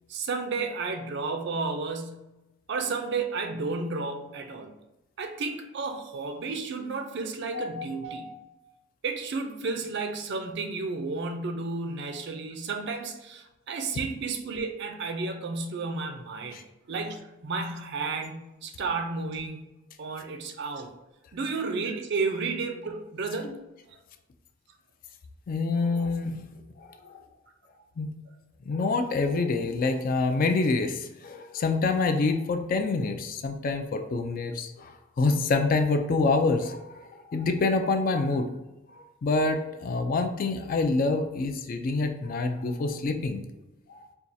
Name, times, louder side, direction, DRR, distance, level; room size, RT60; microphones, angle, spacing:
voice 1, 0.1-2.3 2.7-4.7 5.2-8.3 9.0-16.6 16.9-19.6 20.0-20.9 21.3-23.6 23.9-24.0, right 4 dB, 55° right, 6 dB, 0.4 m, -32 dB
voice 2, 7.5-7.9 16.5-16.6 23.4-23.5 25.5-26.4 26.8-26.9 28.0-28.1 28.7-38.5 39.2-43.4 43.9-44.1, left 3 dB, 40° left, 6 dB, 0.3 m, -26 dB
4.4 x 2.3 x 2.6 m, 1.0 s
head